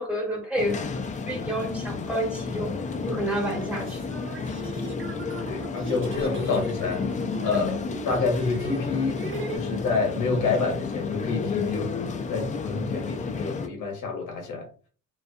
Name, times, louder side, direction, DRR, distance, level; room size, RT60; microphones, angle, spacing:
voice 1, 0.0-2.7 3.0-4.1, equal, 5° right, 1.2 m, -30 dB
sound 1, 0.6-13.7, left 5 dB, 25° left, 0.3 m, -31 dB
sound 2, 2.4-2.5 3.2-9.6, right 2 dB, 40° right, 0.7 m, -38 dB
voice 2, 5.5-7.0 7.4-9.2 9.5-11.9 12.3-14.7, left 4 dB, 85° left, 0.9 m, -28 dB
2.4 x 2.2 x 2.6 m
cardioid pair, 90°, 30 cm